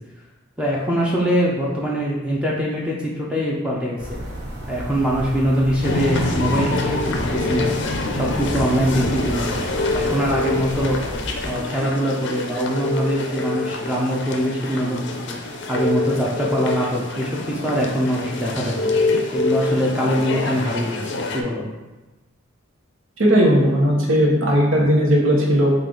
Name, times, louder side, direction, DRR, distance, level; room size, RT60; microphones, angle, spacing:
voice 1, 0.6-4.2 4.7-7.8 8.1-9.6 9.9-11.0 11.4-15.4 15.7-18.9 19.3-21.7, equal, 5° right, -4 dB, 0.5 m, -23 dB
sound 1, 4.0-11.5, right 1 dB, 55° right, 0.8 m, -32 dB
sound 2, 5.8-21.4, left 2 dB, 60° left, 0.5 m, -25 dB
voice 2, 23.2-25.7, equal, 80° right, -2 dB, 1.0 m, -17 dB
5.1 x 2.4 x 3.8 m, 1.1 s
head